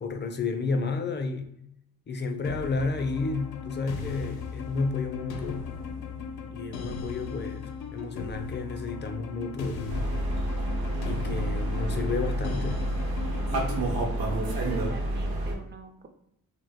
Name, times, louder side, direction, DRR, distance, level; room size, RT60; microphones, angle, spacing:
voice 1, 0.0-1.5 2.1-5.7 6.5-10.1 11.0-12.9, left 4 dB, 30° left, 5 dB, 0.5 m, -31 dB
sound 1, 2.4-13.9, left 5 dB, 80° left, 0.6 m, -38 dB
sound 2, 9.9-15.5, right 1 dB, 75° right, 0.9 m, -29 dB
voice 2, 14.5-16.1, right 5 dB, 30° right, 5 dB, 0.5 m, -43 dB
2.3 x 2.1 x 3.4 m, 0.78 s
cardioid pair, 70°, 36 cm